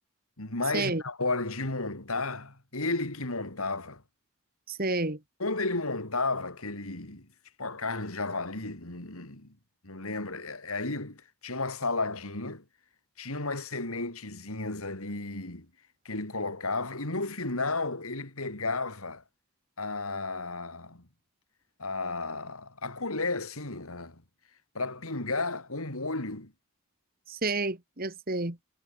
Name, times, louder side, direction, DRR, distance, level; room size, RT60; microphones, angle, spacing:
voice 1, 0.4-4.0 5.4-7.3 7.6-9.5 9.8-12.6 13.2-15.7 16.0-19.2 19.8-21.0 21.8-24.2 24.7-26.5, left 3 dB, 75° left, 4.2 m, -33 dB
voice 2, 4.7-5.2 27.3-28.6, right 3 dB, 40° right, 2.3 m, -30 dB
head